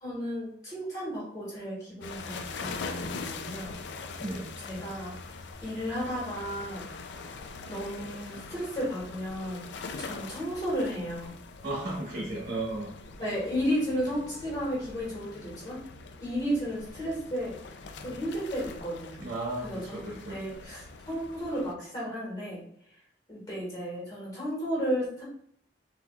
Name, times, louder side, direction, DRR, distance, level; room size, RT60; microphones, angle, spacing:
voice 1, 0.0-3.7 4.1-4.2 4.6-5.1 5.6-6.9 7.7-11.3 13.2-15.8 16.2-17.5 18.0-19.2 19.6-20.0 20.3-22.6 23.3-25.2, equal, 20° left, -5 dB, 1.9 m, -33 dB
sound 1, 2.0-21.7, left 4 dB, 65° left, 0.4 m, -43 dB
voice 2, 11.6-12.9 19.2-20.4, right 2 dB, 50° right, -4 dB, 1.3 m, -34 dB
7.1 x 2.9 x 2.4 m, 0.68 s
head